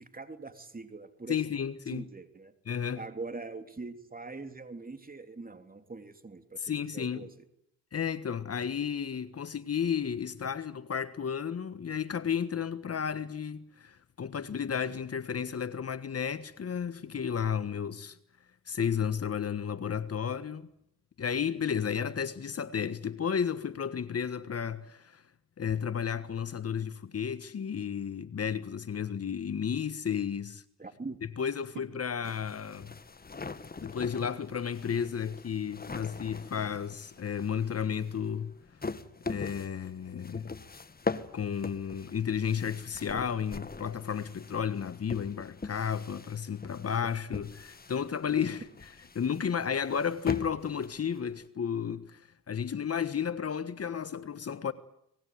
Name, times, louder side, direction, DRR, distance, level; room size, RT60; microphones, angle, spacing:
voice 1, 0.0-1.4 1.9-2.5 2.9-7.3 30.8-31.2 31.7-31.8, right 3 dB, 25° right, 3.3 m, -42 dB
voice 2, 1.3-2.0 2.6-3.0 6.6-7.2 7.9-18.2 18.7-20.7 21.2-25.2 25.6-30.6 31.4-32.9 33.8-38.5 39.3-40.5 41.3-48.6 49.1-54.7, left 7 dB, 45° left, 1.5 m, -33 dB
sound 1, 32.2-51.4, left 4 dB, 25° left, 1.7 m, -42 dB
25.0 x 20.0 x 9.5 m
supercardioid pair, 65°, 33 cm